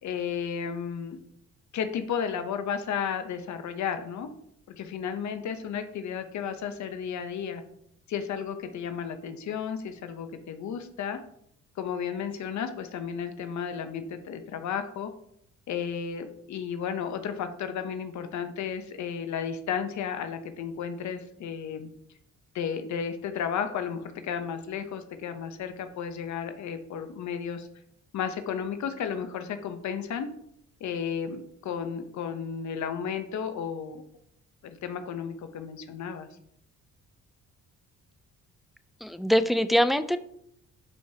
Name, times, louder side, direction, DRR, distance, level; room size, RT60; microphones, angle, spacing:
voice 1, 0.0-1.2 1.7-4.3 4.7-7.6 8.1-11.2 11.8-15.1 15.7-21.9 22.5-27.7 28.1-30.3 30.8-34.0 34.6-36.3, left 7 dB, 70° left, 8 dB, 0.9 m, -33 dB
voice 2, 39.0-40.2, equal, ahead, 11 dB, 0.4 m, -23 dB
11.0 x 4.7 x 2.8 m, 0.71 s
cardioid pair, 90°, 30 cm